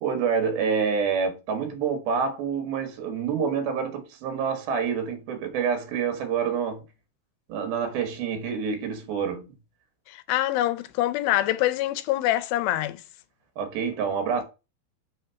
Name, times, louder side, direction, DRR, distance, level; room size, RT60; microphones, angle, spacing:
voice 1, 0.0-6.8 7.5-9.5 13.6-14.4, right 6 dB, 80° right, 3.3 m, -27 dB
voice 2, 10.1-13.0, left 14 dB, 85° left, 2.4 m, -25 dB
6.7 x 3.4 x 5.6 m
omnidirectional pair, 4.3 m